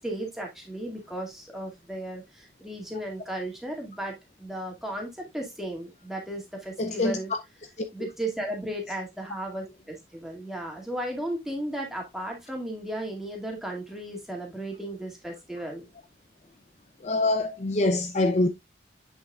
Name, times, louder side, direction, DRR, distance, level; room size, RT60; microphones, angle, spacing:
voice 1, 0.0-7.3 7.9-15.9, right 1 dB, ahead, 2.1 m, -35 dB
voice 2, 6.8-7.2 17.0-18.5, left 2 dB, 40° left, 0.5 m, -24 dB
7.8 x 6.1 x 2.4 m
head